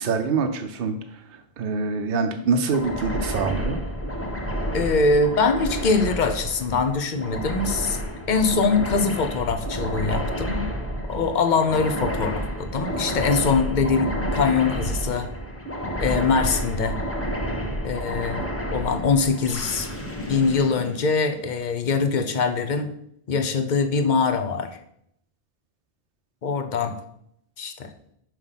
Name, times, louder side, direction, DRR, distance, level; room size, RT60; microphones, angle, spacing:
voice 1, 0.0-3.8, right 4 dB, 70° right, 5 dB, 0.8 m, -25 dB
sound 1, 2.7-21.6, equal, 15° left, 1.0 m, -30 dB
voice 2, 4.7-8.0 8.3-10.7 11.1-15.3 16.0-17.0 17.8-19.9 20.3-22.9 23.3-24.8 26.4-27.0 27.6-27.9, left 4 dB, 50° left, 8 dB, 0.8 m, -23 dB
5.8 x 4.9 x 5.6 m, 0.73 s
omnidirectional pair, 1.0 m